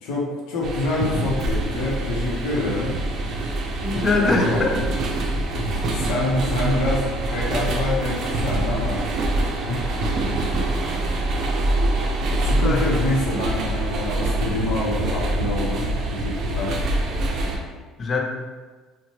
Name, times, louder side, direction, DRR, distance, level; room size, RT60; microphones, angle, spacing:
voice 1, 0.0-3.0 3.9-4.8 5.6-9.1 9.7-10.2 12.4-16.8, left 2 dB, 85° left, -4 dB, 0.7 m, -26 dB
sound 1, 0.6-17.6, right 1 dB, 55° right, 0.5 m, -25 dB
voice 2, 3.8-4.7 12.6-12.8 18.0-18.2, left 3 dB, 35° left, 1 dB, 0.5 m, -22 dB
2.8 x 2.1 x 3.0 m, 1.3 s
supercardioid pair, 105°, 0 cm